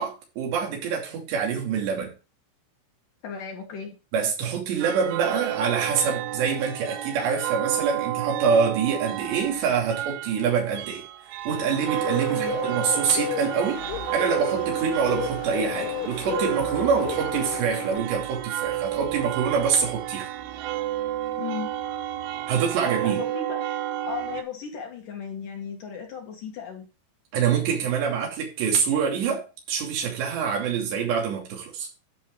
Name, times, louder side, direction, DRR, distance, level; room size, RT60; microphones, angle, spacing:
voice 1, 0.0-2.1 4.1-11.0 11.4-13.8 14.1-20.3 22.5-23.2 27.3-31.9, right 6 dB, 60° right, 4.7 m, -25 dB
voice 2, 3.2-4.0 12.3-12.6 21.4-21.7 23.0-23.7 24.0-26.9, left 7 dB, 60° left, 2.4 m, -36 dB
sound 1, 4.8-24.4, right 12 dB, 90° right, 2.3 m, -31 dB
Bird, 11.5-18.0, left 17 dB, 90° left, 3.3 m, -34 dB
11.5 x 5.6 x 4.6 m
omnidirectional pair, 5.8 m